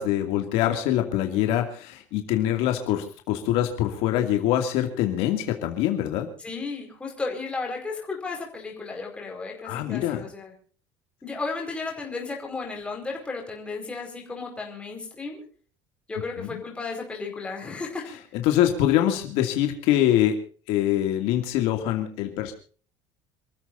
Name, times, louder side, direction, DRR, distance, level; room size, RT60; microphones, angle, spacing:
voice 1, 0.0-6.3 9.6-10.3 16.4-16.6 18.3-20.4 20.7-22.5, left 12 dB, 60° left, 5 dB, 2.5 m, -24 dB
voice 2, 6.4-10.5 11.2-15.4 16.1-18.1, left 4 dB, 10° left, 0 dB, 4.9 m, -34 dB
28.0 x 14.5 x 2.7 m, 0.42 s
cardioid pair, 175°, 11 cm